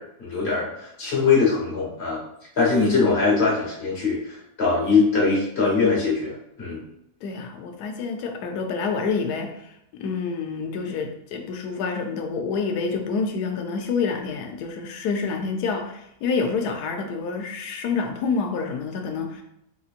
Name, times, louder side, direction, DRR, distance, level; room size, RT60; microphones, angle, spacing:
voice 1, 0.0-2.2 2.5-6.8, left 4 dB, 45° left, -4 dB, 1.4 m, -22 dB
voice 2, 7.2-19.4, left 5 dB, 80° left, 4 dB, 1.1 m, -28 dB
4.2 x 2.9 x 2.4 m, 0.80 s
omnidirectional pair, 1.7 m